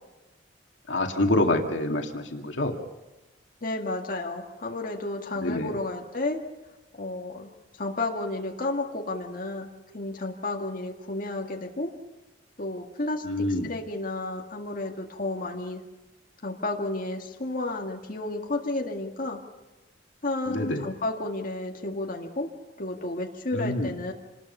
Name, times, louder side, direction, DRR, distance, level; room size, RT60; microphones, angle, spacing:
voice 1, 0.9-2.8 5.4-5.8 13.2-13.7 20.5-20.9 23.5-23.9, left 1 dB, 85° left, 3 dB, 2.2 m, -26 dB
voice 2, 3.6-6.4 7.0-7.5 7.8-11.9 12.6-15.8 16.4-19.4 20.2-22.5 22.8-24.1, left 2 dB, 50° left, 1 dB, 2.0 m, -32 dB
27.0 x 20.5 x 5.6 m, 1.1 s
head